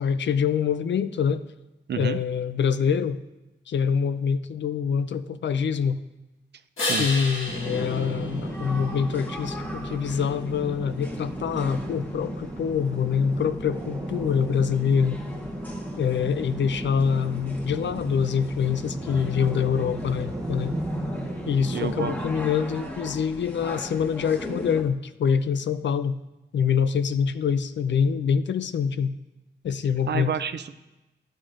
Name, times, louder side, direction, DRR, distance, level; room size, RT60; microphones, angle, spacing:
voice 1, 0.0-1.4 2.0-3.2 3.7-6.0 6.9-15.2 16.0-20.7 21.5-26.2 26.5-29.1 29.6-30.3, left 7 dB, 65° left, 12 dB, 0.4 m, -25 dB
voice 2, 1.9-2.2 6.9-7.1 21.7-22.2 30.1-30.7, right 7 dB, 60° right, 12 dB, 0.4 m, -29 dB
sound 1, 6.8-9.3 15.1-19.1, left 2 dB, 90° left, 1.4 m, -36 dB
sound 2, 7.5-22.5, right 1 dB, 15° right, 0.7 m, -34 dB
sound 3, 8.4-24.8, left 1 dB, 10° left, 1.0 m, -40 dB
11.0 x 6.3 x 2.5 m, 1.0 s
wide cardioid pair, 90°, 20 cm